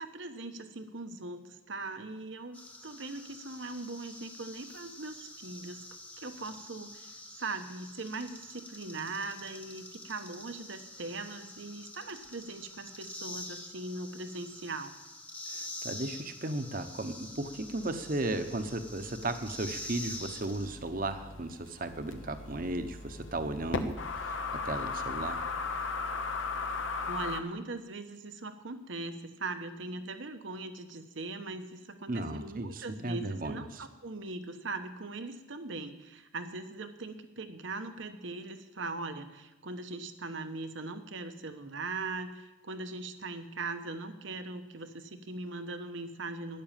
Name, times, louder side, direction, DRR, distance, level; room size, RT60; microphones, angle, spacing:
voice 1, 0.0-5.8 6.2-14.9 27.1-46.6, right 3 dB, 70° right, 9 dB, 1.1 m, -40 dB
sound 1, 2.5-20.7, left 2 dB, 5° left, 0.9 m, -46 dB
voice 2, 15.5-25.4 32.1-33.9, right 2 dB, 45° right, 8 dB, 1.0 m, -35 dB
sound 2, 17.6-27.4, left 4 dB, 75° left, 1.0 m, -38 dB
12.0 x 10.5 x 7.4 m, 1.1 s
head